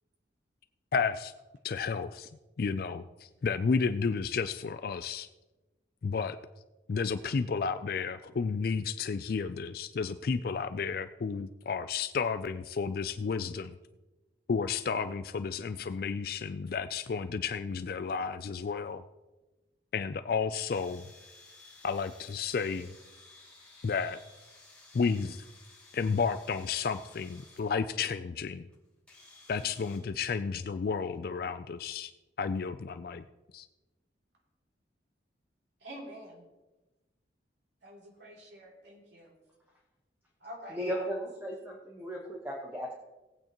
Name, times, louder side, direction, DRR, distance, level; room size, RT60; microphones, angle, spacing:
voice 1, 0.9-1.3 1.6-2.3 2.6-5.3 6.0-6.4 6.9-13.8 14.5-19.0 19.9-21.0 21.8-22.9 23.8-24.2 24.9-25.5 25.9-28.7 29.5-32.1 32.4-33.2 33.5-33.7, left 5 dB, 50° left, 11 dB, 0.3 m, -32 dB
sound 1, 20.7-27.8 28.7-28.8 29.1-30.0, left 3 dB, 5° left, 2.4 m, -56 dB
voice 2, 35.8-36.4 37.8-39.4 40.4-41.1, equal, 70° right, -2 dB, 2.9 m, -47 dB
voice 3, 40.7-42.9, equal, 10° right, -1 dB, 1.1 m, -36 dB
18.0 x 8.7 x 3.0 m, 1.1 s
head